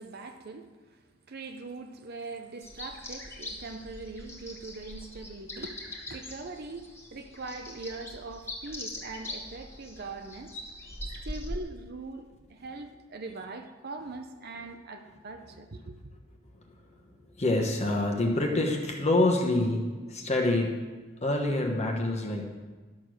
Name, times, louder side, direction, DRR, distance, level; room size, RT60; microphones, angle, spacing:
voice 1, 0.0-10.5 11.2-16.0, right 3 dB, 55° right, 6 dB, 0.7 m, -42 dB
sound 1, 2.6-11.6, left 1 dB, 15° left, 1.6 m, -42 dB
voice 2, 17.4-20.7 21.2-22.6, left 2 dB, 35° left, 0 dB, 1.2 m, -26 dB
12.0 x 6.8 x 6.2 m, 1.4 s
head